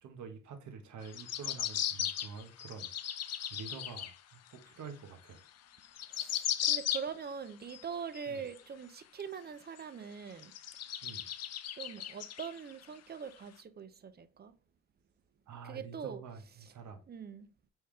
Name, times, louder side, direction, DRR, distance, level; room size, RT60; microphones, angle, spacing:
voice 1, 0.0-5.4 8.3-8.4 11.0-11.3 15.5-17.0, right 5 dB, 70° right, 1.1 m, -48 dB
sound 1, 1.0-4.2 4.6-4.7 5.5-5.6 5.7-7.3 7.7-8.6 9.2-9.3 9.8-9.9 10.4-12.8 13.3-13.4, left 10 dB, 55° left, 0.6 m, -36 dB
voice 2, 6.1-10.5 11.7-14.5 15.6-16.2 17.1-17.5, right 6 dB, 35° right, 0.5 m, -43 dB
4.4 x 3.6 x 3.2 m
cardioid pair, 90°, 30 cm